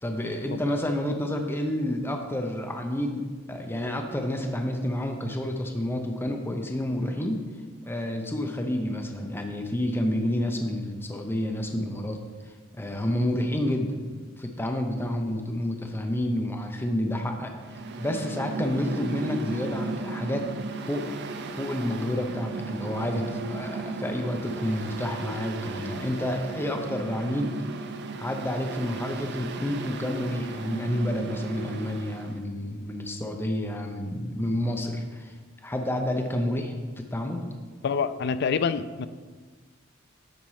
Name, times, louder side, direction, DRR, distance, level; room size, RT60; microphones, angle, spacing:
voice 1, 0.0-7.4 7.8-12.2 12.8-17.5 18.0-20.5 20.9-21.1 21.6-27.5 28.1-35.3 35.6-37.4, left 1 dB, 10° left, 3 dB, 0.6 m, -29 dB
Mechanical fan, 17.5-32.4, right 3 dB, 55° right, 0.5 m, -36 dB
voice 2, 37.8-39.1, left 6 dB, 55° left, 13 dB, 0.4 m, -26 dB
9.4 x 4.4 x 4.8 m, 1.4 s
head